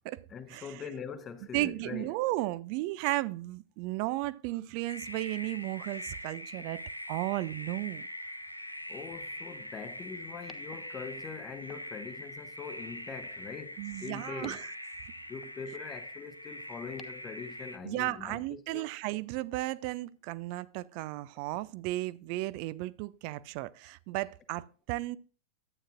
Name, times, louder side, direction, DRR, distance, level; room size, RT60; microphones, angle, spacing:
voice 1, 0.3-2.2 8.9-14.7 15.3-18.9, left 6 dB, 25° left, 0.9 m, -43 dB
voice 2, 1.5-6.8 7.1-8.1 13.8-14.6 17.8-25.2, right 18 dB, 45° right, 0.4 m, -34 dB
sound 1, 4.9-17.8, equal, 90° left, 0.6 m, -43 dB
11.0 x 8.8 x 2.4 m
figure-of-eight pair, 90°, 0 cm